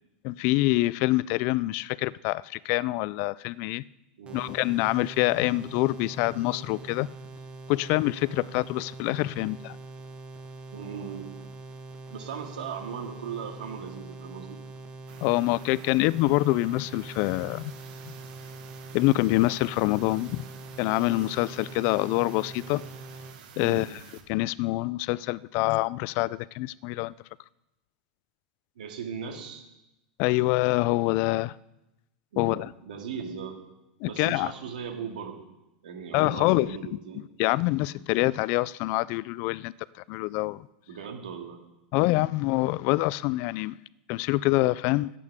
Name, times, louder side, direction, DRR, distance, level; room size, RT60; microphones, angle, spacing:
voice 1, 0.2-3.8 4.3-7.1 7.7-9.8 15.2-17.7 18.1-18.2 18.9-20.4 20.8-22.8 23.6-23.9 24.3-27.1 30.2-31.5 32.4-32.7 34.0-34.5 36.1-37.0 37.4-39.7 40.1-40.7 41.9-43.7 44.1-45.1, left 19 dB, 50° left, 20 dB, 0.3 m, -25 dB
sound 1, 4.3-23.4, right 3 dB, 25° right, 1.4 m, -43 dB
voice 2, 10.7-11.3 12.1-14.6 23.6-23.9 28.8-29.7 32.3-33.6 34.1-35.4 35.8-37.2 40.9-41.6, right 7 dB, 85° right, 3 dB, 2.2 m, -38 dB
sound 2, 15.1-24.2, right 7 dB, 65° right, 1.6 m, -50 dB
17.0 x 8.3 x 3.6 m, 0.96 s
supercardioid pair, 125°, 4 cm